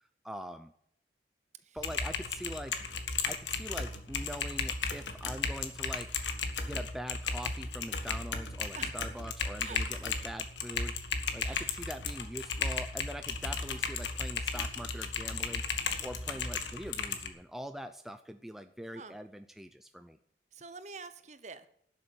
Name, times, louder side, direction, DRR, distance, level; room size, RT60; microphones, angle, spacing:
voice 1, 0.2-0.7 1.7-2.7 3.3-6.1 6.6-10.9 11.3-15.6 16.0-20.2, equal, ahead, 8 dB, 0.5 m, -43 dB
Typing, 1.8-17.3, left 5 dB, 85° left, 1.6 m, -35 dB
voice 2, 11.4-11.8 18.9-19.2 20.5-21.7, right 4 dB, 40° right, 12 dB, 1.0 m, -46 dB
12.0 x 7.0 x 8.0 m, 0.69 s
head